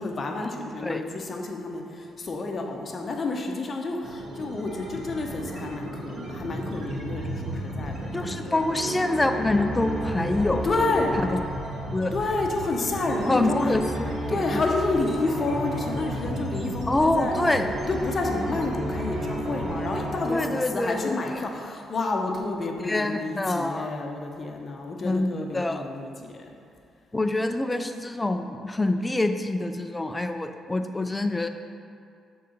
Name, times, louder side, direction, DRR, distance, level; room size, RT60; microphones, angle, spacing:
voice 1, 0.0-8.6 10.6-11.1 12.1-13.7 14.3-17.3 17.9-26.5, left 3 dB, 40° left, 2 dB, 0.8 m, -30 dB
sound 1, 4.0-20.0, right 1 dB, 65° right, 1.3 m, -36 dB
voice 2, 8.1-10.7 11.3-11.4 11.9-12.1 13.3-14.6 16.9-17.7 20.3-21.4 22.8-23.9 25.0-25.9 27.1-31.5, left 2 dB, 15° left, 7 dB, 0.4 m, -26 dB
sound 2, 8.7-21.8, equal, 45° right, 1.6 m, -33 dB
6.6 x 3.9 x 5.2 m, 2.4 s
cardioid pair, 90°, 0 cm